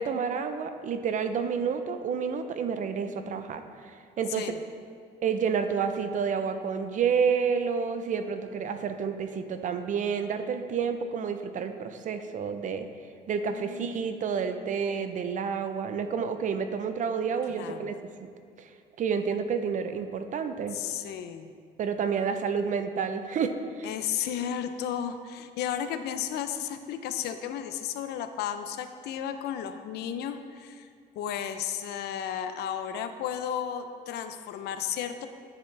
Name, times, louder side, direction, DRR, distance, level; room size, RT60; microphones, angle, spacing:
voice 1, 0.0-4.5 5.2-12.9 13.3-18.0 18.6-18.7 19.0-20.8 21.8-23.9, right 6 dB, 50° right, 8 dB, 0.6 m, -29 dB
voice 2, 13.5-14.1 17.5-17.9 20.7-21.5 23.8-30.9 31.2-35.3, left 9 dB, 75° left, 9 dB, 0.6 m, -34 dB
10.0 x 6.7 x 3.3 m, 2.2 s
cardioid pair, 110°, 17 cm